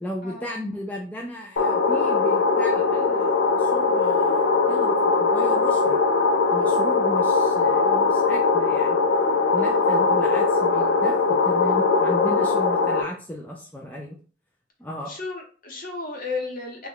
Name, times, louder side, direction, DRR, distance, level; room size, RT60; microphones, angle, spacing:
voice 1, 0.0-6.0 6.5-9.0 9.5-14.2 14.8-15.1, equal, 10° left, -1 dB, 0.3 m, -35 dB
sound 1, 1.6-13.0, left 4 dB, 70° left, 0.5 m, -20 dB
voice 2, 9.6-9.9 15.1-16.9, left 3 dB, 50° left, 1 dB, 0.9 m, -34 dB
3.0 x 2.2 x 3.7 m, 0.40 s
head